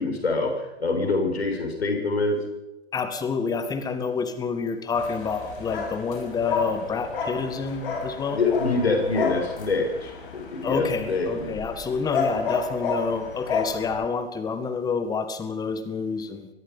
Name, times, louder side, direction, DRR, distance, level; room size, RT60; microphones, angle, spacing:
voice 1, 0.0-2.4 8.3-11.5, left 3 dB, 70° left, 4 dB, 6.9 m, -25 dB
voice 2, 2.9-8.4 10.6-16.5, left 5 dB, 10° left, 10 dB, 1.8 m, -28 dB
sound 1, 4.9-14.0, left 4 dB, 55° left, 6.5 m, -31 dB
23.5 x 19.5 x 5.6 m, 1.0 s
figure-of-eight pair, 115°, 33 cm